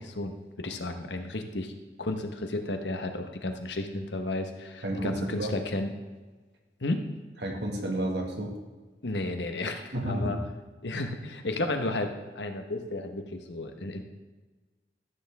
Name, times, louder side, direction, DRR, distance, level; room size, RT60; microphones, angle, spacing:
voice 1, 0.0-1.7 2.0-5.9 6.8-7.0 9.0-10.4 10.8-14.0, left 2 dB, 80° left, 5 dB, 1.1 m, -33 dB
voice 2, 4.8-5.6 7.4-8.5 9.9-10.4, right 1 dB, 75° right, 1 dB, 1.8 m, -31 dB
14.0 x 6.9 x 3.5 m, 1.3 s
head